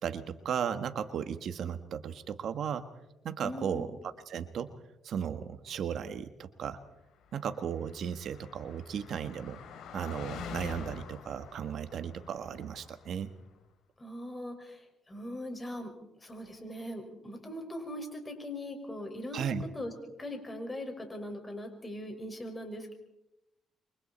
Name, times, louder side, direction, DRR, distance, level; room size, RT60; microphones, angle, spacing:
voice 1, 0.0-2.9 3.2-4.0 4.3-4.7 5.0-6.8 7.3-9.6 9.9-13.3 19.3-19.6, right 8 dB, 65° right, 10 dB, 1.4 m, -35 dB
voice 2, 3.4-3.9 14.0-15.9 16.2-19.9 20.2-22.9, left 1 dB, 20° left, 4 dB, 5.6 m, -40 dB
Car passing by, 7.3-13.2, left 6 dB, 80° left, 3.4 m, -46 dB
28.0 x 24.0 x 4.3 m, 0.88 s
cardioid pair, 90°, 0 cm